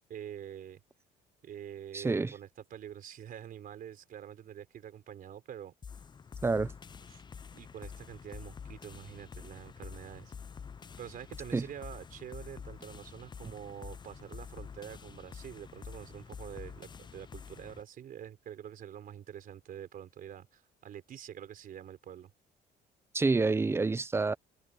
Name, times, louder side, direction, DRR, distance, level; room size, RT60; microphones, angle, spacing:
voice 1, 0.1-0.8 1.4-5.7 7.1-7.2 7.5-10.3 11.0-22.3, right 10 dB, 55° right, 4.5 m, -46 dB
voice 2, 1.9-2.3 6.4-6.7 11.5-11.6 23.1-24.3, right 3 dB, 15° right, 0.6 m, -28 dB
sound 1, 5.8-17.8, left 6 dB, 25° left, 0.6 m, -47 dB
cardioid pair, 110°, 17 cm